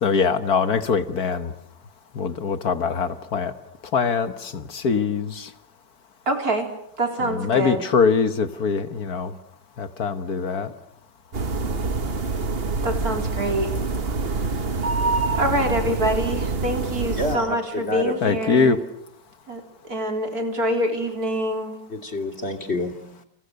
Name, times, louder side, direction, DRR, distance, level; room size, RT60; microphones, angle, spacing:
voice 1, 0.0-1.5 2.2-3.5 3.9-5.5 7.3-9.3 9.8-10.7 18.2-18.8, left 5 dB, 65° left, 1.8 m, -22 dB
voice 2, 6.3-6.7 7.0-7.8 12.8-13.7 14.3-14.8 15.3-18.8 19.5-21.7 23.0-23.1, right 1 dB, 60° right, 4.4 m, -26 dB
sound 1, 11.3-17.4, right 3 dB, 40° right, 1.5 m, -26 dB
voice 3, 17.2-18.1 21.9-22.9, left 2 dB, 40° left, 2.9 m, -28 dB
29.5 x 28.5 x 6.6 m
omnidirectional pair, 1.8 m